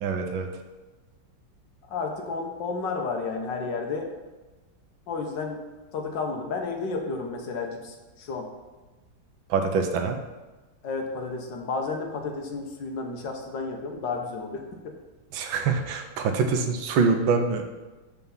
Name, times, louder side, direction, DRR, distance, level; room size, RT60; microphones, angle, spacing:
voice 1, 0.0-0.5 9.5-10.2 15.3-17.6, right 5 dB, 90° right, 5 dB, 1.6 m, -25 dB
voice 2, 1.9-4.1 5.1-5.6 5.9-8.5 10.8-15.0, left 4 dB, 70° left, 3 dB, 1.6 m, -32 dB
7.1 x 4.6 x 5.5 m, 1.2 s
omnidirectional pair, 2.2 m